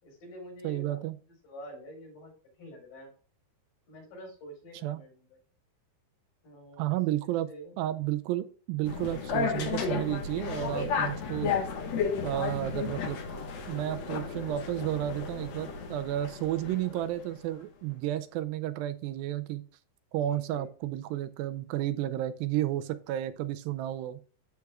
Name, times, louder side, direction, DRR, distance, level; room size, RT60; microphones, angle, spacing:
voice 1, 0.0-1.0 1.3-2.3 2.6-3.1 3.9-5.3 6.4-6.9 7.2-7.8 16.5-17.1 20.1-20.7, equal, 80° left, 0 dB, 6.3 m, -48 dB
voice 2, 0.6-1.2 4.8-5.0 6.8-7.5 7.8-11.5 12.2-13.2 13.7-19.6 20.1-24.2, right 13 dB, 80° right, 10 dB, 2.1 m, -32 dB
sound 1, 8.8-17.2, left 5 dB, 65° left, 1.8 m, -33 dB
13.0 x 4.7 x 2.3 m, 0.39 s
omnidirectional pair, 4.6 m